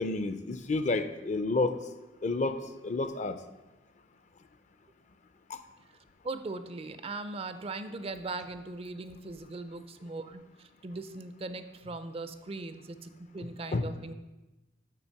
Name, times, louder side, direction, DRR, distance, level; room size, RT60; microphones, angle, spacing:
voice 1, 0.0-1.8 2.2-3.4 13.7-13.9, left 3 dB, 40° left, 10 dB, 0.5 m, -30 dB
voice 2, 6.2-14.1, right 3 dB, 35° right, 11 dB, 0.4 m, -39 dB
7.0 x 5.8 x 5.8 m, 1.1 s
head